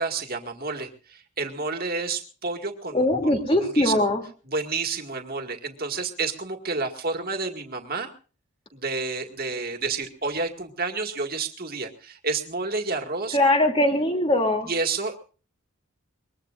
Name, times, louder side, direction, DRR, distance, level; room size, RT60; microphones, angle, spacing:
voice 1, 0.0-3.3 3.6-3.9 4.5-8.1 8.7-13.4 14.7-15.2, right 4 dB, 45° right, 5 dB, 2.1 m, -30 dB
voice 2, 2.9-4.2 13.3-14.7, left 1 dB, 25° left, 3 dB, 2.8 m, -21 dB
23.0 x 21.5 x 2.6 m, 0.38 s
head